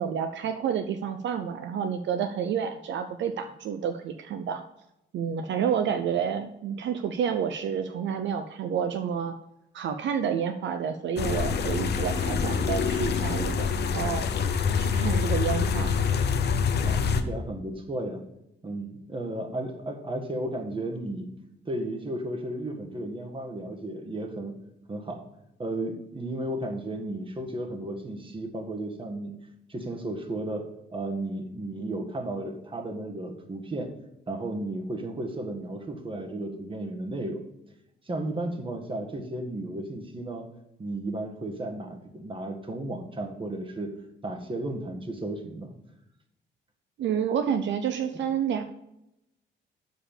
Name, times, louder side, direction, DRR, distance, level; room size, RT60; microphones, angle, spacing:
voice 1, 0.0-4.6 5.1-9.3 9.7-14.2 14.8-16.0 47.0-48.6, right 7 dB, 65° right, 8 dB, 0.6 m, -29 dB
sound 1, 11.2-17.2, left 6 dB, 55° left, 0.8 m, -26 dB
voice 2, 16.8-18.2 18.6-21.3 21.6-24.5 24.9-25.2 25.6-29.3 29.7-33.9 34.3-37.4 38.0-40.5 40.8-43.9 44.2-45.7, right 1 dB, 25° right, 4 dB, 1.6 m, -34 dB
7.0 x 5.0 x 7.1 m, 0.87 s
cardioid pair, 90°, 20 cm